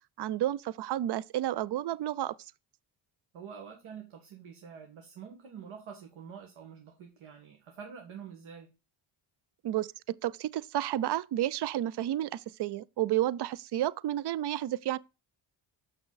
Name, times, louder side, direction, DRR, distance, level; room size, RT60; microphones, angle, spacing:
voice 1, 0.2-2.4 9.6-15.0, right 13 dB, 55° right, 0.5 m, -31 dB
voice 2, 3.3-8.7, right 7 dB, 75° right, 1.6 m, -47 dB
6.4 x 6.1 x 3.9 m
cardioid pair, 75°, 50 cm